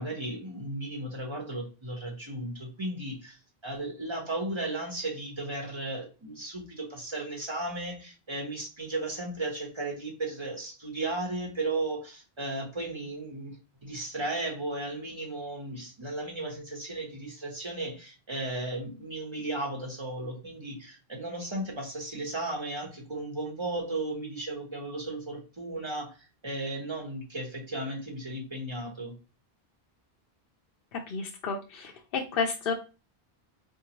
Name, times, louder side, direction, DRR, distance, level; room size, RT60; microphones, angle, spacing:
voice 1, 0.0-13.6 13.8-26.2 26.4-29.1, right 2 dB, 30° right, -1 dB, 0.9 m, -35 dB
voice 2, 30.9-32.7, left 5 dB, 65° left, 1 dB, 0.7 m, -31 dB
3.9 x 2.7 x 2.9 m, 0.32 s
omnidirectional pair, 1.1 m